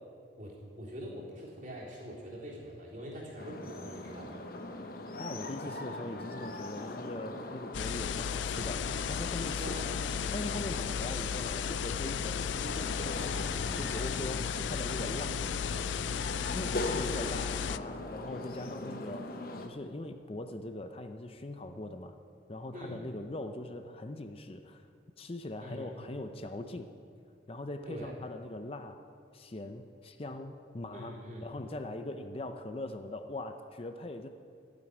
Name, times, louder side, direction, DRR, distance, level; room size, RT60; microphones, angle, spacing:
voice 1, 0.4-4.4 9.6-9.9 14.7-16.2 22.7-23.0 25.6-25.9 27.9-28.1 30.9-31.4, equal, 45° right, -5 dB, 3.8 m, -44 dB
sound 1, 3.4-19.7, left 2 dB, 50° left, 1.0 m, -40 dB
voice 2, 5.2-9.8 10.3-15.4 16.5-22.2 22.5-24.9 25.2-26.9 27.5-29.0 29.3-34.3, left 2 dB, 30° left, 7 dB, 0.6 m, -41 dB
sound 2, 7.7-17.8, left 8 dB, 85° left, 0.4 m, -34 dB
12.0 x 9.1 x 9.3 m, 2.5 s
head